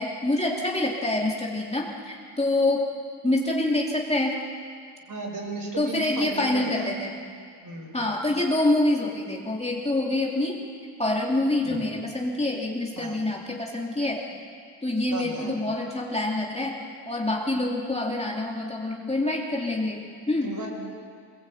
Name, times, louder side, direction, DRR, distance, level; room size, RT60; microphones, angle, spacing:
voice 1, 0.0-2.9 3.2-4.4 5.8-7.1 7.9-10.6 11.0-14.3 14.8-20.5, left 2 dB, 15° left, -2 dB, 2.7 m, -26 dB
voice 2, 5.1-6.9 7.6-8.0 13.0-13.2 15.1-15.5 20.4-20.7, right 2 dB, 50° right, 0 dB, 5.8 m, -35 dB
24.5 x 21.5 x 8.6 m, 2.1 s
wide cardioid pair, 145°, 42 cm